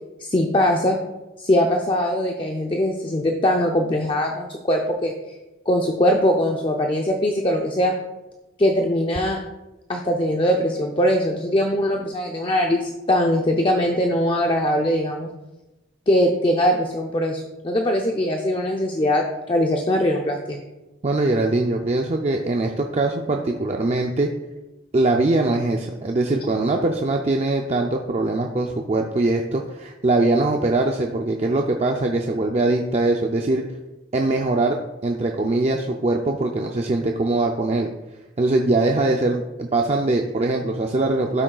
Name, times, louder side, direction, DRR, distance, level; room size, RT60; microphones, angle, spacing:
voice 1, 0.2-1.0 1.4-5.3 5.7-7.9 8.6-9.4 9.9-15.3 16.1-20.6, equal, 25° left, 2 dB, 0.5 m, -21 dB
voice 2, 21.0-24.3 24.9-33.6 34.1-34.8 35.0-37.9 38.4-41.4, right 2 dB, 35° right, 2 dB, 0.4 m, -22 dB
12.0 x 6.2 x 2.3 m, 1.1 s
head